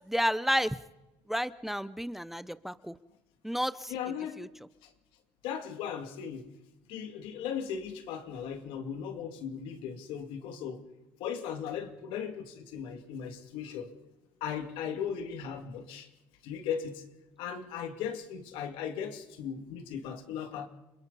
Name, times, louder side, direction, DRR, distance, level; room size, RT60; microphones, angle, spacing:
voice 1, 0.1-0.8 1.3-2.9 3.4-3.9 4.4-4.5, equal, 5° right, 15 dB, 0.6 m, -31 dB
voice 2, 3.9-4.4 5.4-6.4 6.9-10.8 11.2-13.9 14.4-16.1 16.4-17.0 17.4-20.7, left 7 dB, 75° left, 6 dB, 2.5 m, -37 dB
30.0 x 22.0 x 4.1 m, 1.0 s
cardioid pair, 110°, 9 cm